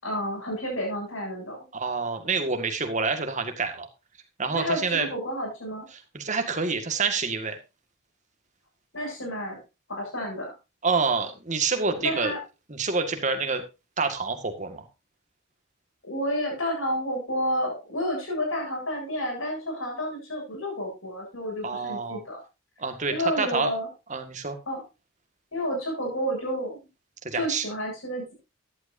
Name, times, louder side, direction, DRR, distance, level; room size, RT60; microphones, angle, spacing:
voice 1, 0.0-1.6 4.5-5.8 8.9-9.6 9.9-10.5 12.0-12.4 16.0-22.4 23.1-23.9 24.7-24.8 25.5-26.8 27.3-28.3, equal, 70° left, 0 dB, 7.6 m, -30 dB
voice 2, 1.7-3.9 4.4-5.1 6.1-7.6 10.8-12.3 12.7-13.6 14.0-14.8 21.6-22.2 22.8-23.7 24.1-24.6 27.2-27.7, right 4 dB, 35° right, 6 dB, 1.8 m, -27 dB
14.0 x 11.5 x 2.7 m, 0.27 s
head